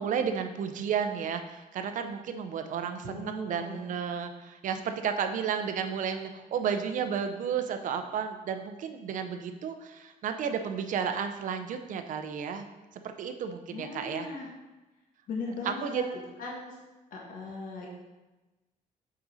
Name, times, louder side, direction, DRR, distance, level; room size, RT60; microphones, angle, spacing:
voice 1, 0.0-12.7 13.0-14.3 15.6-16.0, right 7 dB, 60° right, 7 dB, 0.7 m, -32 dB
voice 2, 3.0-3.9 13.7-14.5 15.3-16.1 16.4-16.8 17.1-17.9, left 3 dB, 65° left, -2 dB, 1.4 m, -38 dB
7.6 x 5.0 x 4.1 m, 1.1 s
cardioid pair, 170°, 15 cm